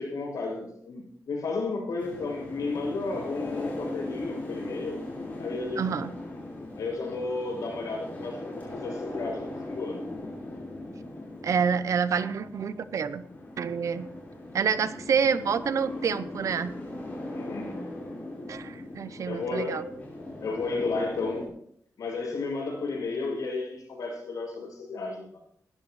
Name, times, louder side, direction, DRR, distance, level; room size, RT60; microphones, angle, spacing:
voice 1, 0.0-5.0 5.4-5.9 6.7-10.0 17.3-17.7 19.3-20.0 20.4-21.5 22.0-25.3, left 3 dB, 75° left, -3 dB, 7.2 m, -33 dB
sound 1, 2.0-21.5, left 1 dB, 25° left, 4.8 m, -39 dB
voice 2, 5.8-6.1 11.4-13.2 13.6-14.1 14.5-16.7 18.5-19.8, right 6 dB, 60° right, 14 dB, 0.7 m, -27 dB
19.5 x 13.0 x 3.2 m, 0.67 s
wide cardioid pair, 175°, 6 cm